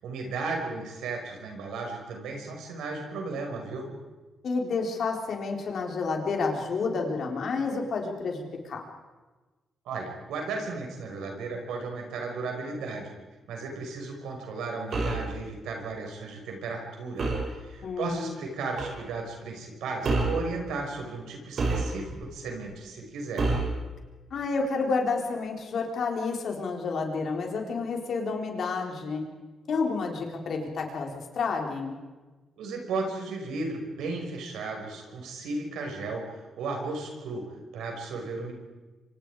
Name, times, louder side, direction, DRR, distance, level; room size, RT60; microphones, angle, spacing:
voice 1, 0.0-3.9 9.9-13.1 13.5-17.3 17.6-23.5 32.6-37.4 37.7-38.5, right 3 dB, 85° right, 2 dB, 5.7 m, -35 dB
voice 2, 4.4-8.8 17.8-18.3 24.3-29.2 29.7-32.0, left 4 dB, 65° left, 2 dB, 4.3 m, -30 dB
sound 1, 14.9-15.3 17.2-17.5 18.8-19.0 20.0-20.5 21.6-22.2 23.4-23.8, right 3 dB, 60° right, 7.0 m, -27 dB
26.0 x 25.5 x 5.0 m, 1.2 s
cardioid pair, 70°, 0 cm